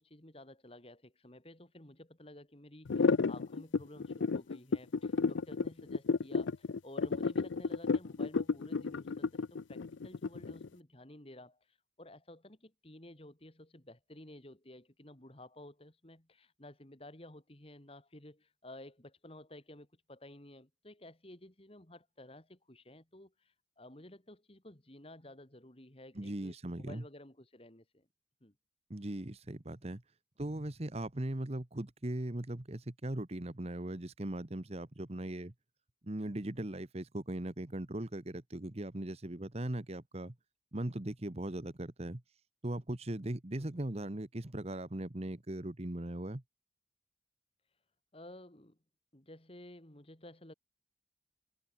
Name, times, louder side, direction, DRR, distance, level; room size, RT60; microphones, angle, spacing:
voice 1, 0.0-28.1 28.4-28.5 43.6-43.8 48.1-48.8 49.1-50.5, left 1 dB, 30° left, 2.5 m, -53 dB
sound 1, 2.9-10.7, left 4 dB, 85° left, 0.5 m, -31 dB
voice 2, 26.1-27.0 28.9-30.0 30.4-35.5 36.0-40.3 40.7-42.2 42.6-46.4, right 1 dB, 35° right, 1.2 m, -39 dB
head